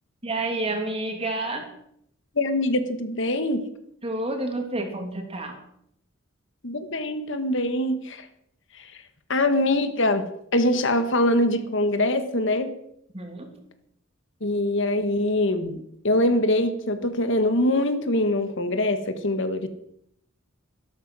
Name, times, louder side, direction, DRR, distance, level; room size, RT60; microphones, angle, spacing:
voice 1, 0.2-1.7 4.0-5.6 13.1-13.6, right 2 dB, 30° right, 4 dB, 2.7 m, -29 dB
voice 2, 2.3-3.6 6.6-8.3 8.8-8.9 9.3-12.7 14.4-15.8 16.0-19.7, left 1 dB, 60° left, 9 dB, 1.5 m, -23 dB
13.0 x 12.5 x 6.1 m, 0.71 s
head